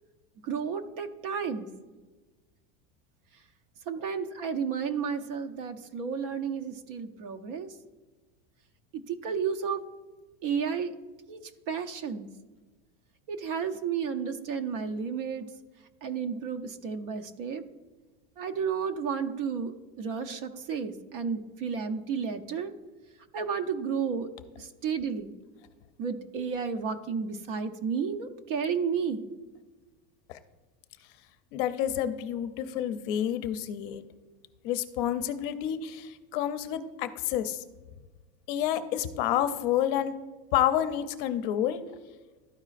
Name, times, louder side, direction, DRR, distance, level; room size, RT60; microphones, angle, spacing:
voice 1, 0.4-1.7 3.9-7.7 8.9-9.8 10.4-11.0 11.3-12.3 13.3-15.5 16.0-17.6 18.4-22.7 23.3-24.3 24.6-25.3 26.0-29.3, right 6 dB, 55° right, 7 dB, 0.7 m, -32 dB
voice 2, 31.5-34.0 34.6-37.6 38.5-40.1 40.5-41.8, left 11 dB, 55° left, 10 dB, 0.6 m, -29 dB
12.5 x 4.9 x 2.5 m, 1.3 s
supercardioid pair, 170°, 33 cm